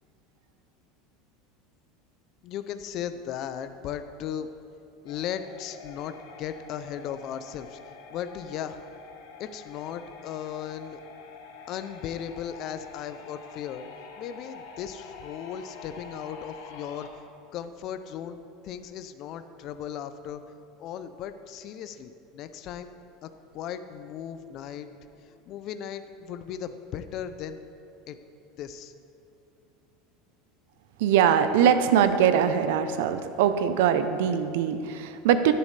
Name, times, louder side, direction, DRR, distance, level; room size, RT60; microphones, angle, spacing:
voice 1, 2.4-4.5 5.0-7.8 8.1-8.8 9.4-11.0 11.7-13.9 14.2-17.2 17.5-18.4 18.6-20.4 20.8-22.9 23.2-24.9 25.2-27.6 28.1-28.2 28.6-28.9, left 9 dB, 40° left, 10 dB, 0.4 m, -36 dB
sound 1, 5.1-17.1, left 5 dB, 80° left, 1.0 m, -47 dB
voice 2, 31.0-35.5, right 8 dB, 70° right, 10 dB, 0.6 m, -22 dB
10.5 x 10.5 x 3.3 m, 2.6 s
supercardioid pair, 165°, 0 cm